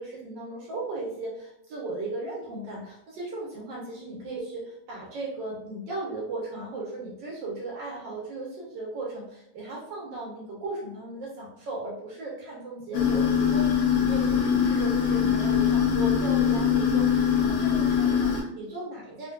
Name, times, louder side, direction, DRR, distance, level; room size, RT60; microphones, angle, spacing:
voice 1, 0.0-19.3, right 2 dB, 75° right, -4 dB, 1.4 m, -36 dB
sound 1, 12.9-18.4, left 7 dB, 65° left, 0.9 m, -23 dB
3.8 x 2.5 x 2.2 m, 0.75 s
omnidirectional pair, 2.0 m